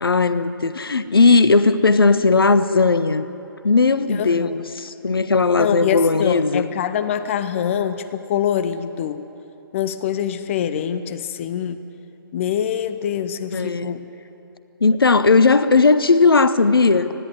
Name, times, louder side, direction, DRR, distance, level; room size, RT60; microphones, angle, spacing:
voice 1, 0.0-3.3 3.6-6.7 13.5-13.9 14.8-17.1, left 4 dB, 75° left, 14 dB, 0.9 m, -17 dB
voice 2, 4.2-4.5 5.6-9.2 9.7-11.8 12.3-14.0, left 9 dB, 35° left, 12 dB, 0.7 m, -24 dB
20.0 x 15.5 x 9.7 m, 2.8 s
figure-of-eight pair, 135°, 12 cm